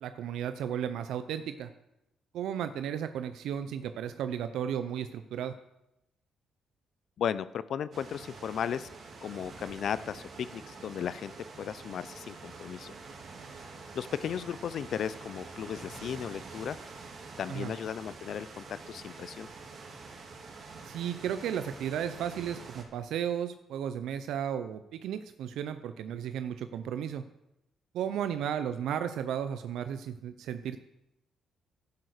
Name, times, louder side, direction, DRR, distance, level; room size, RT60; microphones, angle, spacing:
voice 1, 0.0-1.7 2.3-5.5 17.5-17.7 20.9-27.2 27.9-30.8, right 9 dB, 80° right, 10 dB, 0.7 m, -34 dB
voice 2, 7.2-8.9 9.2-11.3 11.6-12.9 13.9-16.8 17.4-19.5, left 8 dB, 65° left, 16 dB, 0.6 m, -35 dB
sound 1, 7.9-22.8, right 4 dB, 55° right, 3.1 m, -47 dB
11.5 x 11.0 x 6.6 m, 0.86 s
cardioid pair, 90°, 0 cm